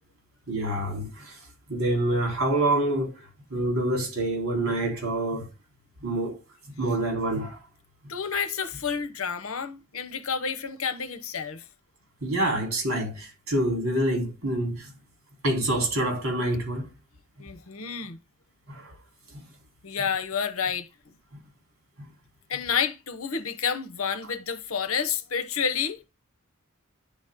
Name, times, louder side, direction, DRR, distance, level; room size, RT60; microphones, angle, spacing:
voice 1, 0.5-1.4 1.7-3.2 3.5-5.5 6.0-6.4 6.8-7.6 12.2-14.9 15.4-16.9 18.7-18.9 19.3-19.4, right 1 dB, 75° right, 3.6 m, -26 dB
voice 2, 8.1-11.7 17.4-18.2 19.8-20.9 22.5-26.0, left 6 dB, 75° left, 0.9 m, -29 dB
9.9 x 4.2 x 3.6 m
head